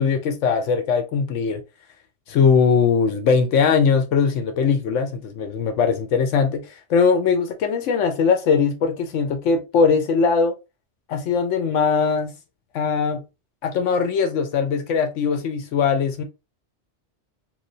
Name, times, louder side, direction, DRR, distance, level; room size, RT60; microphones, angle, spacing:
voice 1, 0.0-1.6 2.3-6.6 6.9-10.5 11.1-12.3 12.7-13.2 13.6-16.2, left 5 dB, 85° left, 1.0 m, -20 dB
3.1 x 2.6 x 2.6 m
omnidirectional pair, 1.2 m